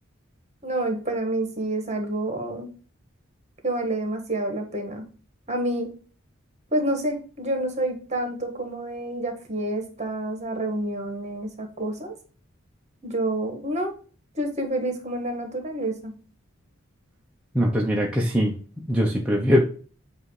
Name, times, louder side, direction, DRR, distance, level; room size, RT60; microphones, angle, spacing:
voice 1, 0.6-2.7 3.6-5.1 5.5-5.9 6.7-12.1 13.0-13.9 14.3-16.1, right 1 dB, 35° right, 4 dB, 1.4 m, -28 dB
voice 2, 17.5-18.5 18.9-19.6, equal, 5° right, -2 dB, 0.7 m, -21 dB
7.8 x 2.6 x 4.7 m, 0.39 s
head